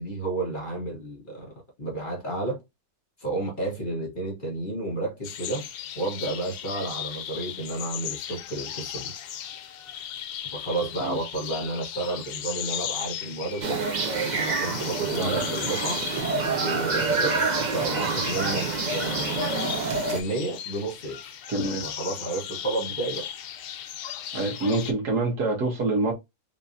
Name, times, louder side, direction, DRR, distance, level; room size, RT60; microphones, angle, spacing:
voice 1, 0.0-2.6 3.2-5.7 5.9-9.1 10.5-13.8 14.3-16.0 16.5-19.5 20.1-21.4 21.8-23.3, right 2 dB, 35° left, 1.3 m, -31 dB
sound 1, 5.2-24.9, left 10 dB, 85° left, 1.2 m, -36 dB
sound 2, 13.6-20.2, right 4 dB, 50° right, 0.5 m, -27 dB
voice 2, 15.2-15.8 21.5-21.8 24.3-26.1, right 2 dB, 85° right, 1.9 m, -26 dB
3.8 x 2.9 x 2.6 m
omnidirectional pair, 1.7 m